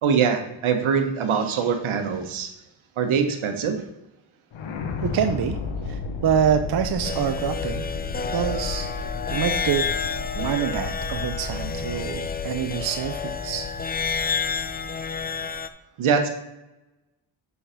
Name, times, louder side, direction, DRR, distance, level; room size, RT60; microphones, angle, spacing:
voice 1, 0.0-2.5 3.0-3.8 16.0-16.3, right 6 dB, 75° right, 6 dB, 1.4 m, -23 dB
sound 1, 4.5-15.6, left 4 dB, 70° left, 1.3 m, -34 dB
voice 2, 5.0-5.6 5.8-7.9 8.3-9.8 10.4-13.7, right 8 dB, 50° right, 7 dB, 0.7 m, -26 dB
sound 2, 7.0-15.7, left 6 dB, 20° left, 0.5 m, -30 dB
7.0 x 5.8 x 5.2 m, 0.95 s
cardioid pair, 65°, 49 cm